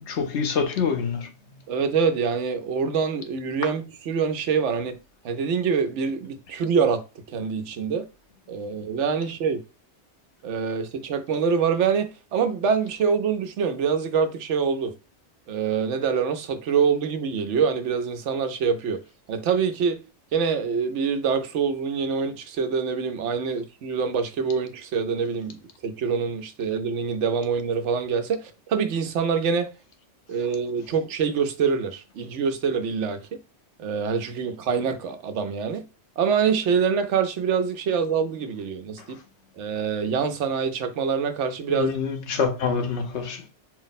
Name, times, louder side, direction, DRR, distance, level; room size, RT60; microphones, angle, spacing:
voice 1, 0.1-1.3 41.7-43.4, left 6 dB, 75° left, 1.1 m, -26 dB
voice 2, 1.7-5.0 5.2-7.0 7.3-8.0 8.5-9.6 10.4-14.9 15.5-19.0 19.3-20.0 20.3-29.7 30.3-33.3 33.8-35.9 36.2-39.2 39.6-41.9, right 6 dB, 85° right, 1.0 m, -25 dB
4.5 x 2.0 x 4.1 m
omnidirectional pair, 1.2 m